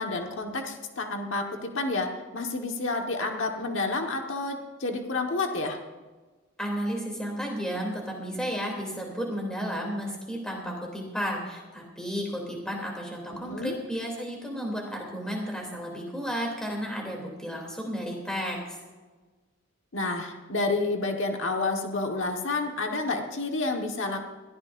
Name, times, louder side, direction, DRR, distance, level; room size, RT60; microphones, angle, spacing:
voice 1, 0.0-5.8 13.3-13.8 19.9-24.2, left 3 dB, 60° left, 3 dB, 1.5 m, -30 dB
voice 2, 6.6-18.8, equal, 5° left, -1 dB, 3.0 m, -33 dB
20.0 x 14.5 x 2.6 m, 1.3 s
head